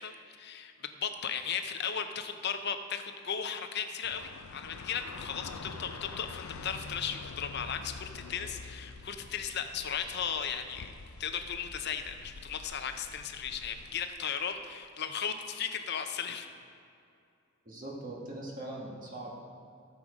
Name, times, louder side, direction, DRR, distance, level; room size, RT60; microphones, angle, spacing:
voice 1, 0.0-10.9 11.2-16.5, left 7 dB, 50° left, 7 dB, 0.7 m, -36 dB
sound 1, 4.0-14.1, left 4 dB, 85° left, 0.5 m, -46 dB
voice 2, 17.6-19.3, right 1 dB, 40° right, -3 dB, 1.5 m, -41 dB
13.5 x 6.8 x 5.0 m, 2.5 s
head